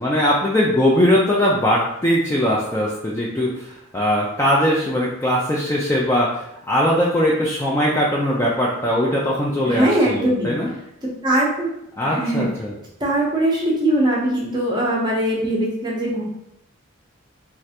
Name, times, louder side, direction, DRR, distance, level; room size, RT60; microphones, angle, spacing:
voice 1, 0.0-10.7 11.9-12.7, equal, 10° left, -4 dB, 0.3 m, -20 dB
voice 2, 9.7-10.5 11.2-11.7 12.0-12.4 13.0-16.2, right 1 dB, 20° right, -3 dB, 0.7 m, -21 dB
3.2 x 2.4 x 2.8 m, 0.77 s
head